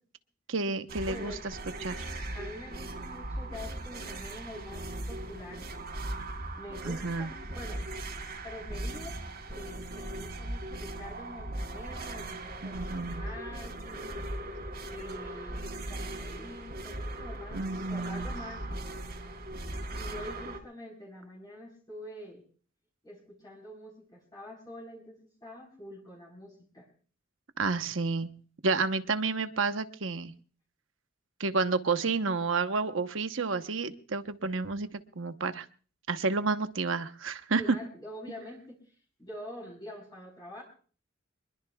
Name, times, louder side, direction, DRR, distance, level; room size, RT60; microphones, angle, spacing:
voice 1, 0.5-1.3 1.8-2.1 6.8-7.3 12.6-13.3 17.5-18.3 27.6-28.3 28.6-30.3 31.4-35.7 36.1-37.6, right 4 dB, 75° right, 9 dB, 1.0 m, -30 dB
sound 1, 0.9-20.6, right 1 dB, 50° right, 3.1 m, -39 dB
voice 2, 1.1-1.4 2.3-5.7 6.6-7.8 8.4-9.2 9.5-14.3 14.8-19.0 19.9-22.4 23.0-26.9 37.6-38.9 39.2-40.6, left 1 dB, 20° left, -4 dB, 4.4 m, -46 dB
24.5 x 21.5 x 2.3 m, 0.42 s
head